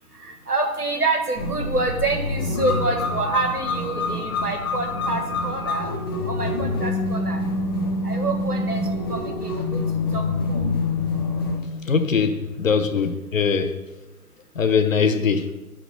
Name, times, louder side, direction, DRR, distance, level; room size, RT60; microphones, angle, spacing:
voice 1, 0.2-6.0 6.3-7.4 8.0-9.8 10.1-10.2 10.5-10.6, right 2 dB, 85° right, 1.9 m, -27 dB
sound 1, 1.4-11.6, left 2 dB, 15° left, 0.6 m, -26 dB
voice 2, 11.9-13.7 14.5-15.5, left 5 dB, 60° left, 1.0 m, -21 dB
11.0 x 4.0 x 6.8 m
figure-of-eight pair, 135°, 45 cm